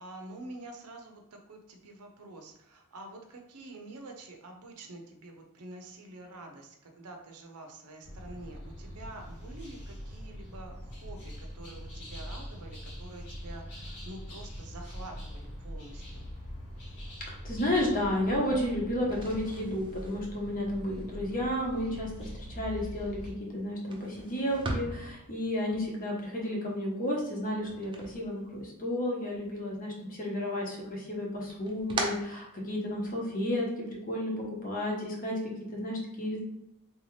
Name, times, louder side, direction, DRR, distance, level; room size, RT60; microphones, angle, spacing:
voice 1, 0.0-16.3, right 2 dB, 85° right, 3 dB, 0.6 m, -47 dB
sound 1, 8.0-23.3, equal, 75° left, 1.5 m, -43 dB
voice 2, 17.3-36.4, left 1 dB, 40° left, -1 dB, 0.9 m, -32 dB
sound 2, 19.0-29.0 29.3-30.2 30.5-33.2, right 2 dB, 20° right, 0.5 m, -42 dB
3.4 x 2.8 x 3.1 m, 0.83 s
head